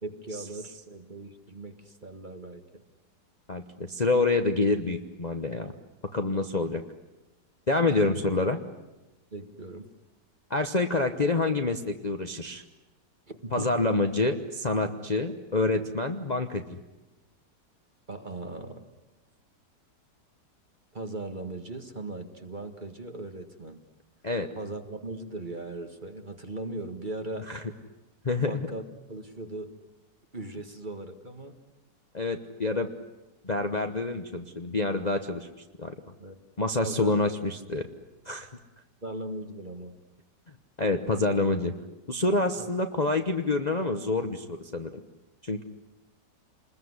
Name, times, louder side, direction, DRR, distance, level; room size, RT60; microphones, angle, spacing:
voice 1, 0.0-2.8 6.5-6.6 7.9-8.2 9.3-9.9 13.3-13.7 18.1-18.9 20.9-23.8 24.6-27.5 28.4-29.7 30.3-31.6 36.2-36.4 36.8-37.2 39.0-40.0, right 2 dB, 25° right, 6 dB, 1.9 m, -38 dB
voice 2, 3.5-5.7 6.1-6.8 7.7-8.6 10.5-12.6 13.5-16.8 24.2-24.5 27.5-27.6 28.2-28.7 32.1-32.9 33.4-35.5 35.8-35.9 36.6-37.9 38.2-38.5 40.8-41.7 42.1-45.0 45.4-45.6, left 3 dB, 30° left, 5 dB, 1.0 m, -27 dB
28.0 x 21.0 x 9.7 m, 1.0 s
omnidirectional pair, 1.9 m